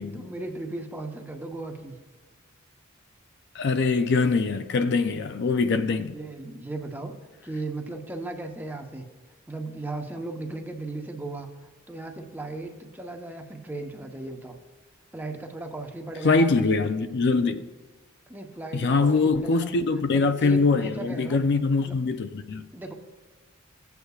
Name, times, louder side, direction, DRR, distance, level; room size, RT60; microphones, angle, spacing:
voice 1, 0.0-2.0 6.1-7.1 7.4-9.1 9.5-11.5 11.9-14.6 15.1-16.7 18.3-19.7 20.1-21.4 21.8-21.9 22.7-22.9, right 2 dB, 10° right, 0.9 m, -36 dB
voice 2, 3.5-6.2 16.2-17.7 18.7-22.7, left 4 dB, 60° left, 0.5 m, -23 dB
15.5 x 8.2 x 2.3 m
head